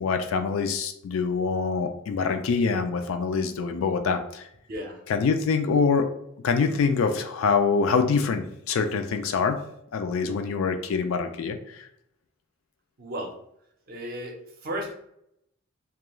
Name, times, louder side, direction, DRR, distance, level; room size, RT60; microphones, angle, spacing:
voice 1, 0.0-4.5 5.1-6.1 6.4-9.6 9.9-11.9, left 5 dB, 70° left, 7 dB, 0.3 m, -25 dB
voice 2, 4.7-5.0 13.0-13.3 13.9-14.4 14.6-14.9, equal, 45° right, 2 dB, 0.6 m, -33 dB
2.4 x 2.3 x 2.9 m, 0.74 s
head